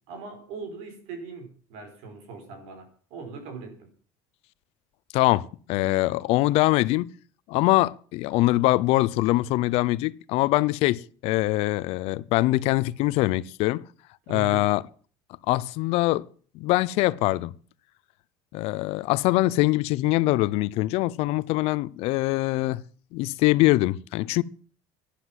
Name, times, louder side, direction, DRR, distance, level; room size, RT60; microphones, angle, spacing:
voice 1, 0.1-3.9 14.3-14.7, right 5 dB, 80° right, 5.3 m, -40 dB
voice 2, 5.1-7.1 7.5-13.8 14.3-14.8 15.5-16.2 16.5-17.5 18.5-22.8 23.1-24.4, left 18 dB, 75° left, 0.7 m, -23 dB
12.0 x 10.0 x 7.6 m
cardioid pair, 130°, 11 cm